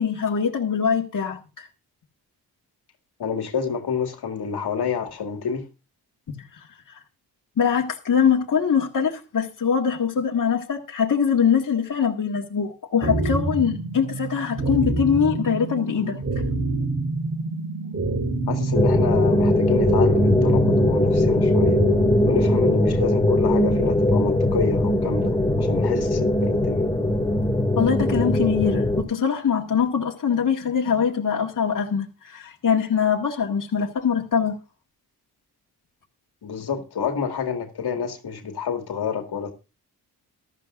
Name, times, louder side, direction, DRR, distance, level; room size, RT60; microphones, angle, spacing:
voice 1, 0.0-1.7 7.6-16.2 27.8-34.6, left 7 dB, 50° left, 1.8 m, -23 dB
voice 2, 3.2-5.6 18.5-21.8 22.3-26.9 36.4-39.5, left 6 dB, 70° left, 2.0 m, -28 dB
sound 1, 13.0-23.0, right 2 dB, 30° right, 3.5 m, -27 dB
sound 2, 18.7-29.0, left 1 dB, 10° left, 2.2 m, -20 dB
14.5 x 12.5 x 2.5 m
cardioid pair, 70°, 40 cm